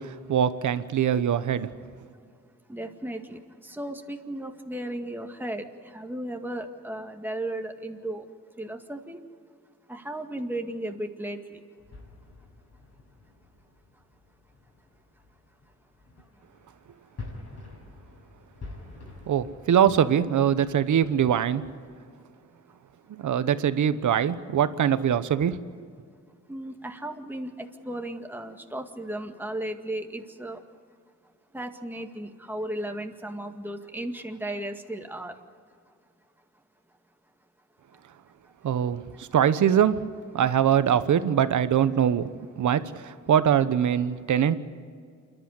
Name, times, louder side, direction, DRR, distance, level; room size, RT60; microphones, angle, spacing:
voice 1, 0.0-1.7 19.3-21.6 23.1-25.6 38.6-40.0 40.3-42.3 42.6-44.5, right 9 dB, 75° right, 13 dB, 1.1 m, -23 dB
voice 2, 2.7-8.3 8.6-9.2 9.9-11.6 13.9-14.0 16.2-16.4 22.7-22.8 26.5-30.6 31.5-35.4 35.9-36.0 37.9-38.0 38.4-38.9 39.1-39.2, right 1 dB, 5° right, 4 dB, 2.0 m, -35 dB
sound 1, 11.8-22.0, left 3 dB, 55° left, 6.5 m, -48 dB
28.0 x 11.5 x 9.7 m, 2.1 s
cardioid pair, 70°, 30 cm